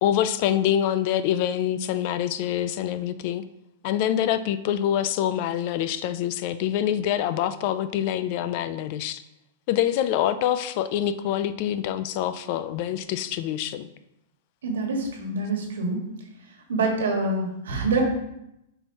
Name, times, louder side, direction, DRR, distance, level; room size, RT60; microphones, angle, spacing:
voice 1, 0.0-3.4 3.8-9.2 9.7-13.9, left 10 dB, 50° left, 12 dB, 0.4 m, -25 dB
voice 2, 14.6-16.0 16.7-18.0, right 3 dB, 90° right, 1 dB, 1.7 m, -26 dB
7.7 x 4.5 x 2.9 m, 0.85 s
hypercardioid pair, 140°, 0 cm